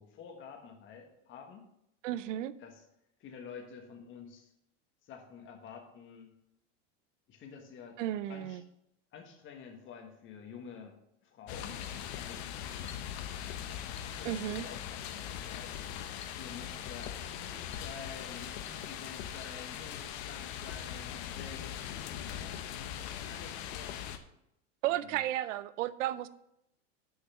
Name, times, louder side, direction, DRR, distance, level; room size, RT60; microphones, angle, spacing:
voice 1, 0.0-1.7 2.6-2.8 3.2-4.5 5.0-6.4 7.3-8.0 8.3-8.6 9.1-11.8 12.1-12.5 13.7-15.7 16.3-24.2 24.9-25.2, left 6 dB, 35° left, 3 dB, 1.4 m, -50 dB
voice 2, 2.0-2.5 8.0-8.6 14.2-14.7 24.8-26.3, right 13 dB, 80° right, 16 dB, 0.6 m, -33 dB
sound 1, 11.5-24.2, left 10 dB, 60° left, 0.9 m, -41 dB
Chink clink, 12.9-13.2 14.0-14.2 15.1-15.3 16.2-16.4 17.0-17.3 17.7-17.9 18.7-18.9 19.4-19.6 19.9-20.0 20.5-20.7 21.5-21.6, left 5 dB, 15° left, 0.8 m, -54 dB
6.8 x 5.6 x 6.7 m, 0.81 s
supercardioid pair, 130°, 37 cm